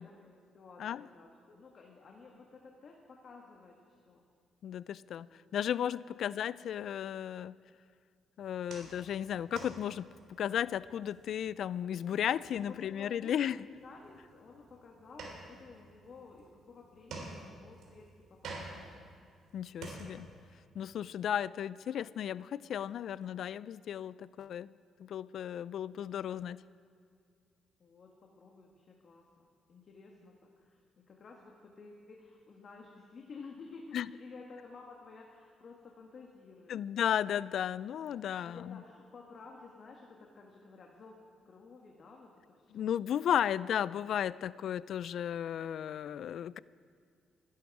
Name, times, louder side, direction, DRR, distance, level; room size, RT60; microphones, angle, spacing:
voice 1, 0.0-4.3 6.1-6.2 12.6-19.2 27.8-36.7 38.4-41.2 41.4-42.9, left 4 dB, 50° left, 0 dB, 1.7 m, -53 dB
voice 2, 4.6-5.3 5.5-7.5 8.4-10.1 10.4-13.6 19.5-20.3 20.8-24.7 25.0-26.6 33.9-34.1 36.7-38.8 42.7-46.6, left 9 dB, 70° left, 19 dB, 0.3 m, -34 dB
sound 1, 8.4-20.5, right 3 dB, 75° right, 3.4 m, -50 dB
26.0 x 11.5 x 4.8 m, 2.2 s
cardioid pair, 90°, 0 cm